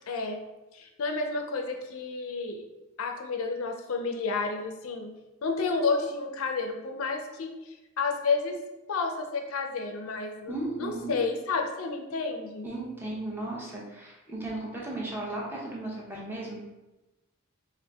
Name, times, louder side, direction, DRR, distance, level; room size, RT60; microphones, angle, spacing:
voice 1, 0.1-0.4 0.7-2.6 3.0-5.1 5.4-8.6 8.9-12.7, left 4 dB, 80° left, 4 dB, 0.5 m, -31 dB
voice 2, 10.5-11.2 12.6-16.6, right 2 dB, 10° right, -4 dB, 0.7 m, -35 dB
4.2 x 2.5 x 3.5 m, 1.0 s
head